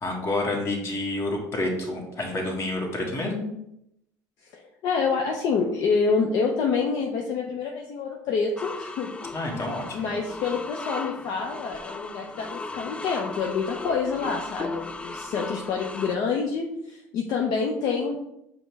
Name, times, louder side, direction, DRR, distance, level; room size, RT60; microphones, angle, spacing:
voice 1, 0.0-3.5 9.3-10.1, left 2 dB, 40° left, 0 dB, 1.4 m, -29 dB
voice 2, 4.5-9.1 9.5-18.2, left 5 dB, 60° left, 0 dB, 0.6 m, -27 dB
sound 1, 8.6-16.1, left 3 dB, 15° left, 0.3 m, -37 dB
5.1 x 2.1 x 4.6 m, 0.80 s
supercardioid pair, 85°, 7 cm